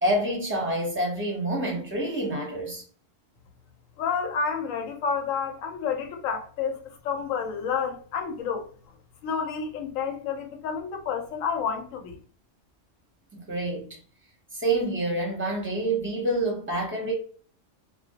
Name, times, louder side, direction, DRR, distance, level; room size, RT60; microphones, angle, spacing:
voice 1, 0.0-2.8 13.3-13.9 14.5-17.1, right 1 dB, 15° right, 0.5 m, -27 dB
voice 2, 4.0-8.7 9.2-12.2, left 6 dB, 90° left, 1.0 m, -30 dB
2.2 x 2.1 x 2.7 m
omnidirectional pair, 1.3 m